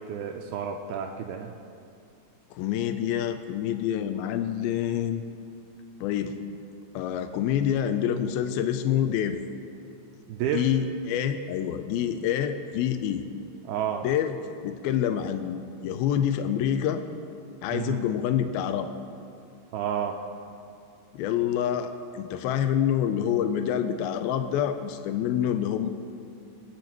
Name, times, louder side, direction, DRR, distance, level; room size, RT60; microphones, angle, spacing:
voice 1, 0.1-1.5 10.3-10.7 13.6-14.1 17.7-18.0 19.7-20.2, right 8 dB, 80° right, 2 dB, 2.4 m, -30 dB
voice 2, 2.5-5.2 6.0-6.4 6.9-9.4 10.5-13.2 14.0-14.4 14.6-17.0 17.6-18.9 21.1-25.9, left 9 dB, 80° left, 8 dB, 2.3 m, -27 dB
26.0 x 9.0 x 3.0 m, 2.4 s
omnidirectional pair, 4.6 m